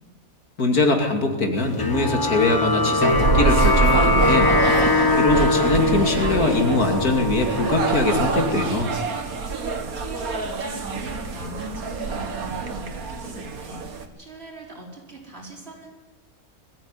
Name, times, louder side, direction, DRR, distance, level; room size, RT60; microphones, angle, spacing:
voice 1, 0.6-4.7 5.2-8.9, left 2 dB, 80° left, 4 dB, 3.1 m, -22 dB
sound 1, 1.8-8.7, left 2 dB, 20° left, 0.8 m, -22 dB
sound 2, 2.9-14.0, right 4 dB, 75° right, 2.1 m, -26 dB
voice 2, 9.9-15.9, right 1 dB, 45° right, -1 dB, 5.1 m, -40 dB
22.0 x 14.5 x 9.7 m, 1.2 s
omnidirectional pair, 1.5 m